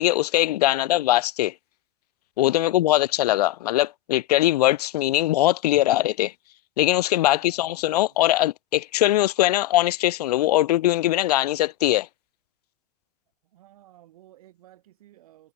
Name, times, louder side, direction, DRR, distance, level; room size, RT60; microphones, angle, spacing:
voice 1, 0.0-1.5 2.4-6.3 6.8-12.1, left 15 dB, 85° left, 0.6 m, -21 dB
voice 2, 0.7-1.3 2.6-3.2 7.3-8.3 13.4-15.5, right 14 dB, 65° right, 7.4 m, -55 dB
supercardioid pair, 180°, 20 cm